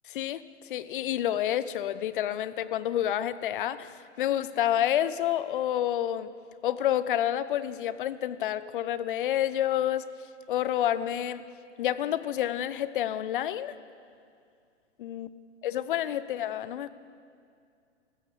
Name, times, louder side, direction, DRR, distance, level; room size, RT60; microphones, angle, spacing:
voice 1, 0.1-0.4 0.7-6.3 6.6-10.1 10.5-11.4 11.8-13.7 15.0-15.3 15.6-16.9, left 11 dB, 45° left, 16 dB, 0.9 m, -29 dB
29.5 x 16.0 x 6.9 m, 2.3 s
figure-of-eight pair, 115°, 36 cm